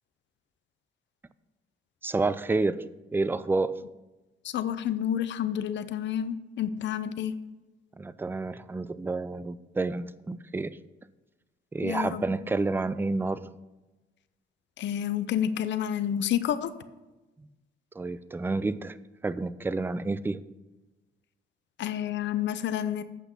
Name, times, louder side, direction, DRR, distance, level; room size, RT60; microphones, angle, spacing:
voice 1, 2.0-2.8 3.1-3.7 8.0-10.8 11.7-13.5 18.0-19.0 19.2-20.4, right 3 dB, 10° right, 15 dB, 0.4 m, -29 dB
voice 2, 4.4-7.4 11.8-12.2 14.8-16.7 21.8-23.0, left 10 dB, 65° left, 13 dB, 0.6 m, -29 dB
8.3 x 5.7 x 5.5 m, 1.1 s
cardioid pair, 90°, 20 cm